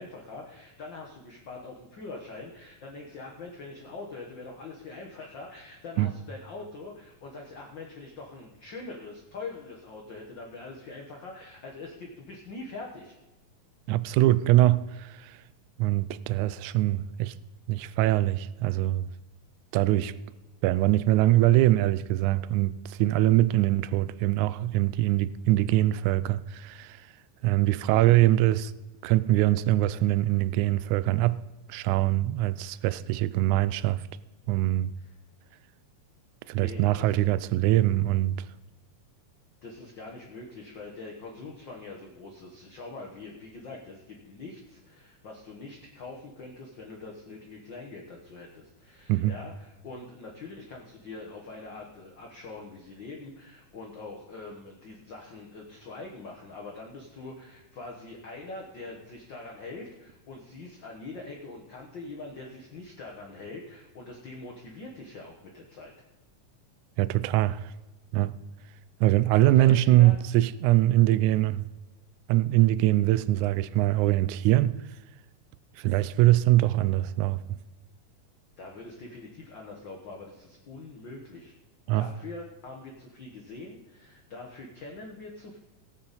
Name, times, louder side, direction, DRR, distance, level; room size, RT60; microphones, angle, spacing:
voice 1, 0.0-13.2 27.9-28.0 35.0-35.1 36.5-37.2 39.6-65.9 69.4-70.2 78.6-81.5 81.9-85.6, left 3 dB, 55° left, 1.3 m, -43 dB
voice 2, 13.9-15.4 15.8-17.3 17.7-19.1 19.7-20.1 20.6-27.0 27.4-28.7 29.0-31.4 31.7-34.0 34.5-34.9 36.5-38.4 49.1-49.3 67.0-67.7 68.1-68.3 69.0-71.6 72.3-74.8 75.8-77.4 81.9-82.1, right 15 dB, 80° right, 1.8 m, -23 dB
17.5 x 8.8 x 4.2 m
omnidirectional pair, 3.8 m